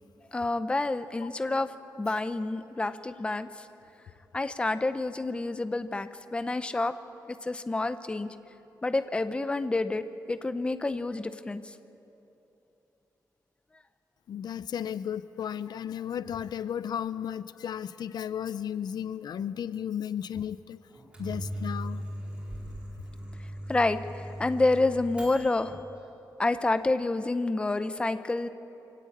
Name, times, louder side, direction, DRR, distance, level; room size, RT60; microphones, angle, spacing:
voice 1, 0.3-1.7 2.0-3.7 4.3-6.9 7.4-8.3 8.8-11.7 23.7-25.8 26.4-28.5, left 2 dB, 15° left, 11 dB, 0.6 m, -28 dB
voice 2, 14.3-20.8 21.2-22.0, left 9 dB, 70° left, 15 dB, 0.5 m, -34 dB
Microwave oven, 20.9-25.7, equal, 15° right, 3.9 m, -39 dB
24.5 x 16.5 x 8.5 m, 2.9 s
wide cardioid pair, 170°, 7 cm